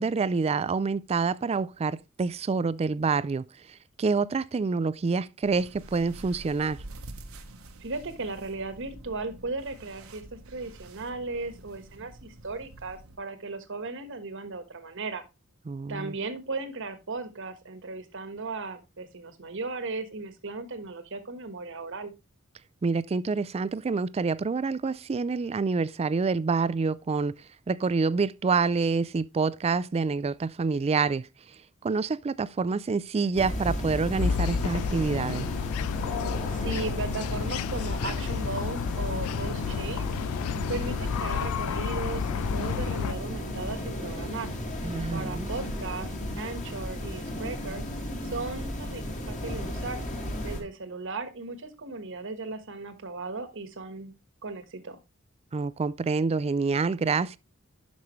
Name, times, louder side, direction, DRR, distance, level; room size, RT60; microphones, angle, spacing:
voice 1, 0.0-6.8 15.7-16.1 22.8-27.4 27.7-31.3 31.8-35.5 44.8-45.5 55.5-57.4, right 4 dB, 30° right, 0.3 m, -27 dB
sound 1, 5.4-13.2, right 1 dB, 80° right, 1.1 m, -47 dB
voice 2, 7.8-15.2 15.9-22.1 36.5-40.1 40.7-44.5 45.1-47.8 48.2-50.0 50.4-54.1 54.4-55.0, right 3 dB, 60° right, 1.3 m, -36 dB
sound 2, 33.3-50.6, equal, 35° left, 2.1 m, -34 dB
sound 3, 34.2-43.1, left 8 dB, 85° left, 0.3 m, -31 dB
11.5 x 5.3 x 3.1 m
head